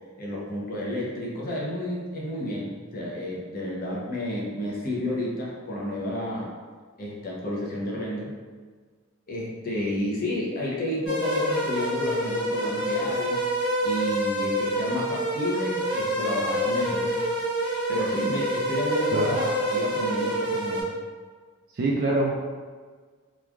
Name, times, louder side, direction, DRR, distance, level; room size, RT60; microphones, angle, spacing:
voice 1, 0.2-6.5 7.0-8.3 9.3-13.4 13.8-17.2 17.9-20.9, left 1 dB, 45° left, -4 dB, 0.6 m, -31 dB
sound 1, 11.1-20.8, equal, 65° left, 1.2 m, -27 dB
voice 2, 21.7-22.3, right 2 dB, 45° right, -3 dB, 0.3 m, -24 dB
3.0 x 2.2 x 2.4 m, 1.5 s
head